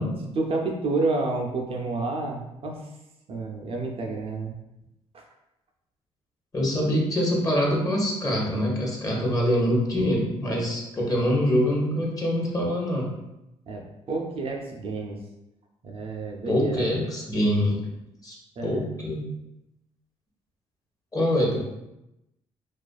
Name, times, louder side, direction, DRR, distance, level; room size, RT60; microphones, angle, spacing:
voice 1, 0.2-2.9 3.3-4.5 5.1-5.2 13.7-15.2 15.8-16.9 18.6-18.8, right 3 dB, 50° right, 1 dB, 0.4 m, -30 dB
voice 2, 6.5-13.1 16.5-17.8 18.2-18.3 18.6-19.3 21.1-21.6, equal, 30° left, -2 dB, 0.8 m, -24 dB
2.3 x 2.3 x 2.2 m, 0.90 s
supercardioid pair, 65°, 13 cm